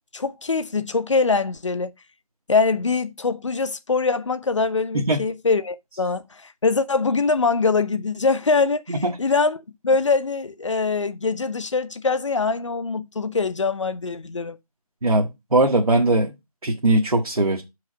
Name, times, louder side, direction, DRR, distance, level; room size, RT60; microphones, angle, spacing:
voice 1, 0.1-1.9 2.5-14.6, left 4 dB, 55° left, 0.7 m, -23 dB
voice 2, 15.0-16.3 16.6-17.6, right 2 dB, 75° right, 1.3 m, -20 dB
5.6 x 4.8 x 5.1 m
figure-of-eight pair, 165°, 19 cm